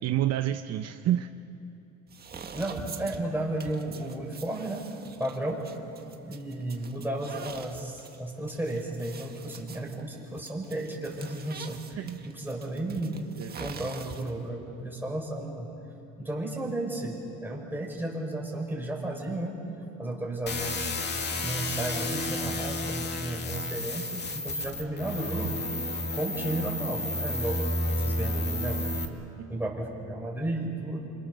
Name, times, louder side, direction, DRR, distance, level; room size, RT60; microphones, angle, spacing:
voice 1, 0.0-1.3 11.9-12.3 13.4-13.7 29.4-29.6, right 12 dB, 55° right, 8 dB, 0.9 m, -29 dB
sound 1, 2.1-14.5, right 6 dB, 30° right, 1.7 m, -45 dB
voice 2, 2.5-4.9 5.2-5.7 6.2-13.2 13.6-15.7 16.2-19.5 20.0-20.9 21.4-25.6 26.1-28.9 29.5-31.1, right 1 dB, 5° right, -1 dB, 5.5 m, -33 dB
sound 2, 20.5-29.1, left 1 dB, 35° left, 2.3 m, -31 dB
27.5 x 27.0 x 6.8 m, 2.7 s
cardioid pair, 115°, 31 cm